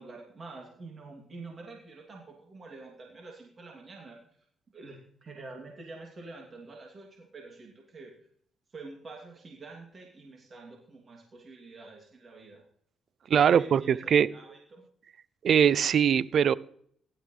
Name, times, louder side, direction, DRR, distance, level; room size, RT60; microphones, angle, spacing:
voice 1, 0.0-4.2 4.7-8.3 8.7-12.6 13.3-14.8, right 3 dB, 40° right, -1 dB, 2.8 m, -47 dB
voice 2, 13.3-14.3 15.4-16.5, right 8 dB, 60° right, 20 dB, 0.5 m, -22 dB
17.0 x 12.0 x 3.3 m, 0.63 s
cardioid pair, 90°, 0 cm